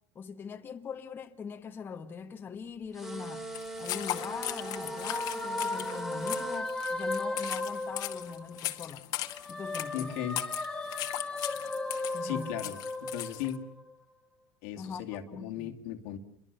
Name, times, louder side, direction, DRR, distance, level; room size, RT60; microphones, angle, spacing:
voice 1, 0.2-3.5 3.8-9.0 9.5-10.2 12.1-12.6 14.8-15.7, left 6 dB, 25° left, 1.8 m, -42 dB
sound 1, 2.9-6.6, right 2 dB, 5° right, 4.6 m, -41 dB
sound 2, 3.5-13.6, left 16 dB, 55° left, 2.0 m, -38 dB
sound 3, 3.8-8.8 9.2-13.9, left 2 dB, 10° left, 2.2 m, -36 dB
voice 2, 9.9-10.4 12.2-13.6 14.6-16.2, left 11 dB, 70° left, 2.5 m, -37 dB
29.5 x 23.0 x 6.9 m
supercardioid pair, 125°, 8 cm